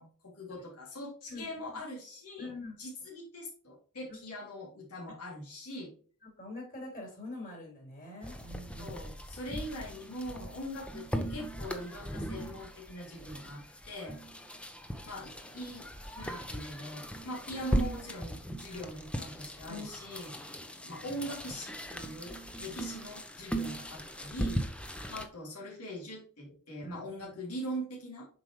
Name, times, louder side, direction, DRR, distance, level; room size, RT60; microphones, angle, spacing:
voice 1, 0.0-2.5 2.8-5.9 8.8-14.2 15.0-15.9 16.1-20.3 20.8-22.4 22.6-24.6 25.1-28.3, equal, 90° left, -4 dB, 2.8 m, -42 dB
voice 2, 1.3-1.8 2.4-2.7 6.4-9.0 18.7-18.9 19.7-19.9 22.6-23.1 26.8-27.4, left 2 dB, 40° left, -1 dB, 3.6 m, -45 dB
sound 1, 8.2-25.3, right 1 dB, 5° left, 0.7 m, -38 dB
7.5 x 5.0 x 3.1 m, 0.43 s
head